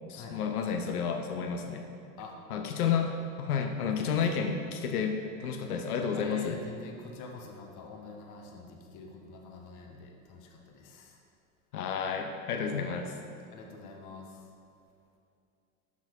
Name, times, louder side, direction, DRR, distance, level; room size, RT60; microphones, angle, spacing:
voice 1, 0.1-1.8 2.5-6.6 11.7-13.1, left 6 dB, 85° left, 4 dB, 0.8 m, -31 dB
voice 2, 6.1-11.2 12.6-12.7 13.5-14.5, left 4 dB, 45° left, 1 dB, 1.1 m, -46 dB
5.9 x 5.8 x 4.5 m, 2.6 s
hypercardioid pair, 95°, 44 cm